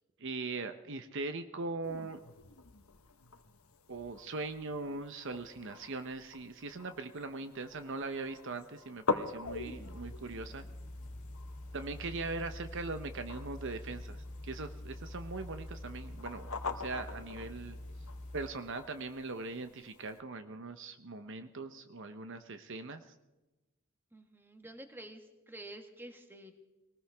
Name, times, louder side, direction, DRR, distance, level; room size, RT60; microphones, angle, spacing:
voice 1, 0.2-2.2 3.9-10.6 11.7-17.8 18.3-23.1, right 3 dB, 55° right, 8 dB, 0.8 m, -40 dB
sound 1, 1.8-20.2, left 4 dB, 70° left, 1.2 m, -44 dB
sound 2, 9.4-18.5, left 1 dB, 35° left, 2.1 m, -46 dB
voice 2, 24.1-26.5, right 1 dB, 10° right, 5 dB, 1.3 m, -49 dB
22.0 x 19.0 x 3.5 m, 1.1 s
head